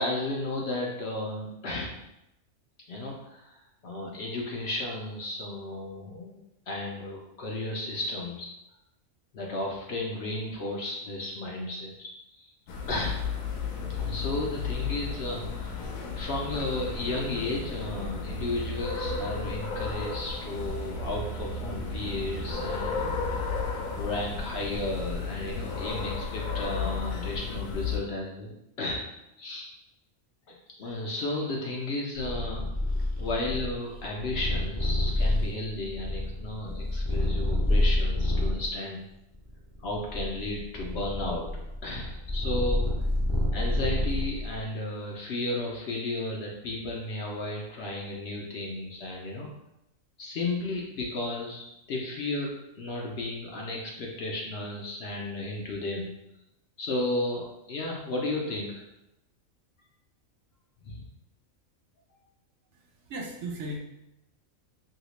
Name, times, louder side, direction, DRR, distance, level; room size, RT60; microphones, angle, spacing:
voice 1, 0.0-2.0 2.9-8.5 9.3-12.5 12.9-13.3 14.0-23.1 24.0-29.1 29.4-29.7 30.8-32.7 33.2-39.1 39.8-41.5 41.8-42.9 43.5-49.5 50.2-56.1 56.8-58.8 60.8-61.0, left 2 dB, 65° left, -2 dB, 0.7 m, -34 dB
sound 1, 12.7-28.0, left 4 dB, 85° left, 1.0 m, -33 dB
Purr, 32.1-38.7 39.3-44.6, left 1 dB, 35° left, 0.3 m, -28 dB
voice 2, 62.7-63.8, right 1 dB, 70° right, 0 dB, 0.9 m, -37 dB
2.8 x 2.7 x 3.0 m, 0.88 s
omnidirectional pair, 1.4 m